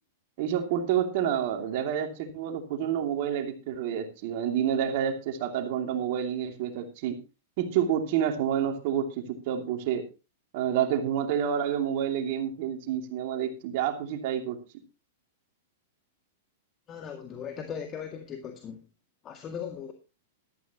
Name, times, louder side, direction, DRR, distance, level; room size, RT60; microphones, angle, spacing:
voice 1, 0.4-7.2 7.6-10.0 10.5-14.6, right 9 dB, 55° right, 4 dB, 2.8 m, -28 dB
voice 2, 16.9-18.8 19.2-19.9, left 7 dB, 30° left, 4 dB, 1.9 m, -38 dB
14.0 x 13.0 x 3.0 m, 0.31 s
hypercardioid pair, 105°, 0 cm